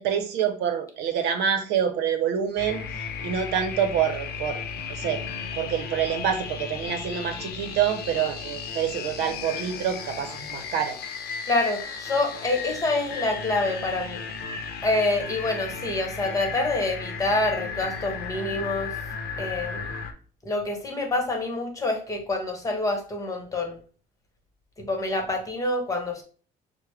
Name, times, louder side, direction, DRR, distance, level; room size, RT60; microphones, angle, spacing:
voice 1, 0.0-2.8 3.2-5.2 5.6-11.0, right 8 dB, 85° right, 7 dB, 0.7 m, -27 dB
sound 1, 2.6-20.1, left 5 dB, 70° left, 0.7 m, -35 dB
voice 2, 11.5-14.2 14.8-19.0 19.4-19.9 20.4-23.8 24.8-26.2, left 2 dB, 20° left, 2 dB, 1.2 m, -27 dB
5.9 x 2.1 x 3.3 m, 0.40 s
cardioid pair, 110°, 17 cm